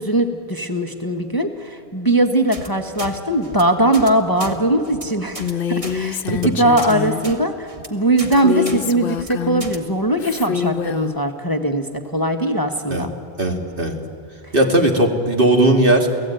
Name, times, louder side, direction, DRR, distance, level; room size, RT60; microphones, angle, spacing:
voice 1, 0.0-13.1, right 1 dB, 20° left, 5 dB, 1.2 m, -20 dB
sound 1, 2.5-2.7 3.0-3.1 3.4-3.6 3.9-4.1 4.4-4.5 4.9-5.0 5.4-5.5 5.8-6.0 6.3-6.5 6.8-6.9 7.2-7.4 7.7-7.9 8.2-8.4 8.7-8.8 9.1-9.3 9.6-9.8, right 1 dB, 30° right, 1.6 m, -33 dB
Female speech woman speaking, 5.4-7.3 8.3-9.7 10.2-11.2, left 7 dB, 60° left, 1.0 m, -25 dB
voice 2, 13.4-13.9 14.5-16.1, right 1 dB, 55° right, 2 dB, 2.5 m, -17 dB
29.0 x 17.0 x 9.1 m, 2.5 s
omnidirectional pair, 1.1 m